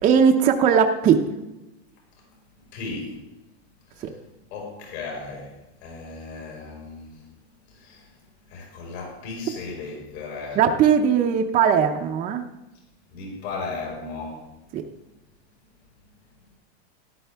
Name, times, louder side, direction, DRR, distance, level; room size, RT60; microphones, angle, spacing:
voice 1, 0.0-1.2 4.0-4.1 10.6-12.4 14.7-14.8, right 7 dB, 20° right, 2 dB, 0.6 m, -19 dB
voice 2, 2.7-3.1 4.5-5.5 5.8-7.1 7.8-8.0 8.5-10.6 13.1-14.4, left 3 dB, 70° left, -2 dB, 5.1 m, -35 dB
13.5 x 11.5 x 3.5 m, 1.0 s
supercardioid pair, 160°, 33 cm